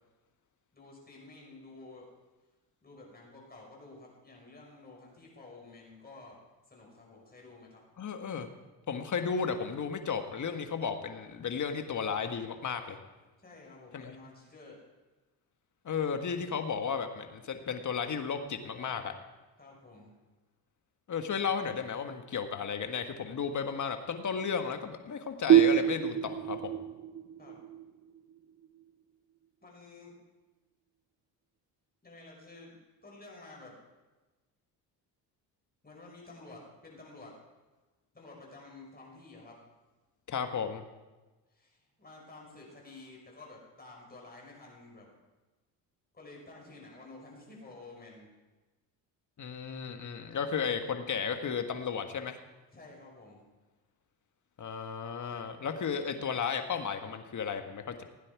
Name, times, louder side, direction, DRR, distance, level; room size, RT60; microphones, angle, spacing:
voice 1, 0.7-2.1 2.8-6.4 6.7-7.8 13.4-14.8 19.6-20.1 27.4-27.6 29.6-30.1 32.0-33.8 35.8-37.4 38.1-39.6 41.5-45.1 46.1-48.3 52.7-53.4, left 2 dB, 20° left, -2 dB, 5.6 m, -51 dB
voice 2, 8.0-8.5 8.9-13.0 13.9-14.1 15.8-19.1 21.1-26.7 40.3-40.8 49.4-52.4 54.6-58.0, left 6 dB, 40° left, 7 dB, 1.5 m, -34 dB
sound 1, 25.5-28.9, right 11 dB, 40° right, 0.4 m, -26 dB
16.5 x 9.7 x 4.7 m, 1.2 s
supercardioid pair, 75°, 44 cm